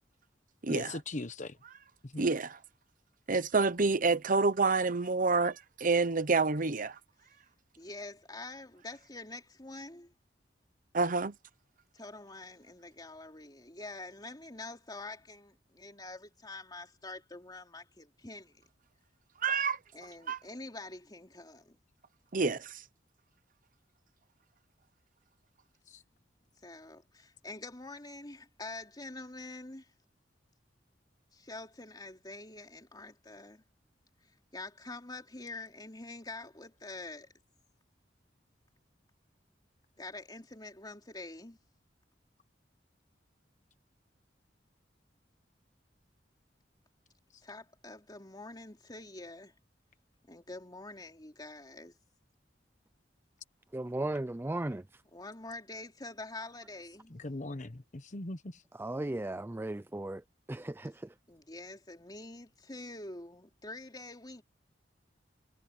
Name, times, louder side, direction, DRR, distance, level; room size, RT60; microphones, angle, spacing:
voice 1, 0.7-1.6 2.0-2.3 25.9-26.0 57.1-58.6, left 2 dB, 45° left, 1.1 m, -40 dB
voice 2, 2.2-2.6 3.3-7.0 10.9-11.3 19.4-19.8 20.3-20.4 22.3-22.8, right 4 dB, 50° right, 1.0 m, -28 dB
voice 3, 7.8-10.1 11.9-18.7 19.9-21.8 26.6-29.9 31.3-33.6 34.5-37.3 40.0-41.6 47.4-49.5 50.3-52.0 55.1-57.2 61.3-64.4, left 2 dB, 25° left, 3.1 m, -46 dB
voice 4, 53.7-55.0 58.7-61.2, right 1 dB, 15° right, 0.4 m, -36 dB
head